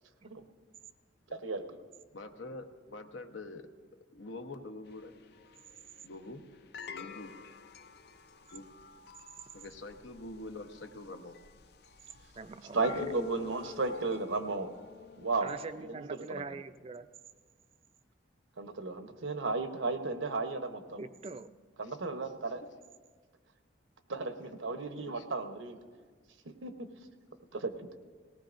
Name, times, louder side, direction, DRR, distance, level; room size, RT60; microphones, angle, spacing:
voice 1, 1.3-1.6 12.7-14.7 15.2-15.5 15.9-16.4 18.6-21.0 21.8-22.6 24.1-25.8 26.4-26.9 27.5-27.9, right 3 dB, 85° right, 7 dB, 0.9 m, -34 dB
voice 2, 2.1-3.7 4.1-5.1 6.0-6.5 6.9-7.3 8.5-8.6 9.5-11.4 21.9-22.0 25.0-25.3, left 2 dB, 75° left, 6 dB, 0.9 m, -45 dB
sound 1, 4.9-15.8, left 6 dB, 55° left, 0.5 m, -49 dB
voice 3, 12.4-13.1 15.4-17.1 21.0-21.5, right 4 dB, 30° right, 11 dB, 0.4 m, -43 dB
19.0 x 18.5 x 2.6 m, 1.5 s
head